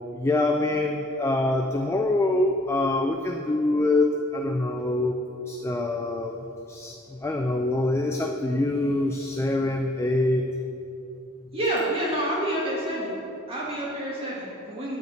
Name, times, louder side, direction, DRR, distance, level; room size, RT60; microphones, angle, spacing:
voice 1, 0.1-5.1 5.5-6.4 6.7-10.5, left 2 dB, 10° left, 3 dB, 0.4 m, -25 dB
voice 2, 11.5-13.1 13.5-15.0, right 1 dB, 25° right, -6 dB, 1.6 m, -28 dB
9.5 x 4.8 x 7.9 m, 2.7 s
head